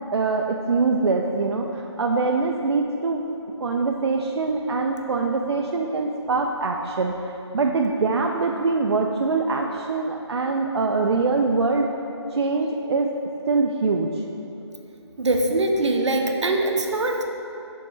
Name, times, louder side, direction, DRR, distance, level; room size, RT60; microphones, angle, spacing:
voice 1, 0.1-3.2 3.6-11.9 12.3-13.1 13.5-14.1, right 4 dB, 70° right, 2 dB, 0.4 m, -23 dB
voice 2, 15.2-17.2, right 2 dB, 85° right, 3 dB, 0.8 m, -22 dB
5.4 x 3.6 x 5.5 m, 2.8 s
hypercardioid pair, 180°, 15 cm